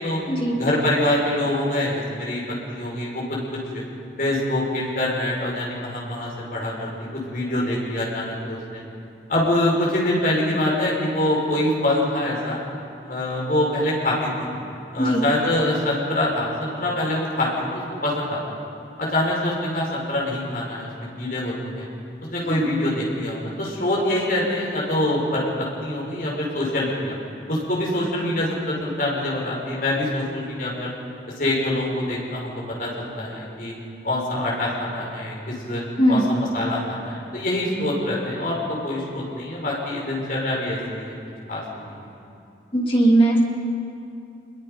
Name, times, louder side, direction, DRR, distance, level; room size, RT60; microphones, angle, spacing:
voice 1, 0.6-2.4 2.7-3.8 4.2-8.8 9.3-12.6 13.0-14.5 14.9-18.4 19.0-21.9 22.2-27.1 27.5-30.9 31.4-32.5 32.8-33.7 34.0-35.8 36.1-41.1 41.5-42.1, left 1 dB, 50° left, -4 dB, 5.4 m, -25 dB
voice 2, 42.7-43.4, right 1 dB, 30° left, -2 dB, 2.9 m, -19 dB
26.0 x 21.5 x 5.2 m, 2.7 s
head